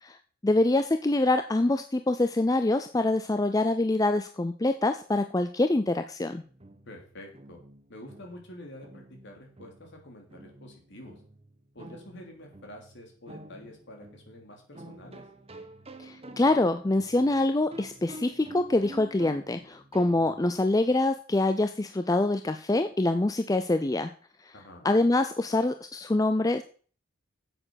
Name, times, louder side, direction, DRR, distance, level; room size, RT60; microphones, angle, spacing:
voice 1, 0.4-6.4 16.0-24.1 24.4-24.5 24.8-26.6, left 2 dB, 15° left, 8 dB, 0.4 m, -25 dB
sound 1, 6.4-20.6, right 1 dB, 25° right, 1.0 m, -49 dB
voice 2, 6.8-7.6 7.9-11.2 11.7-15.2 24.5-24.9, left 1 dB, 55° left, 1 dB, 3.4 m, -47 dB
8.9 x 7.9 x 6.3 m, 0.43 s
head